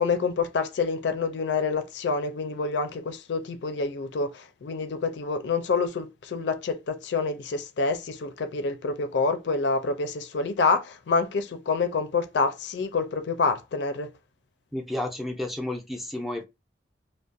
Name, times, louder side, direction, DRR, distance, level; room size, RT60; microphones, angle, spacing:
voice 1, 0.0-14.1, left 4 dB, 80° left, 0.4 m, -27 dB
voice 2, 14.7-16.5, left 1 dB, ahead, 0.5 m, -31 dB
2.4 x 2.1 x 2.5 m
head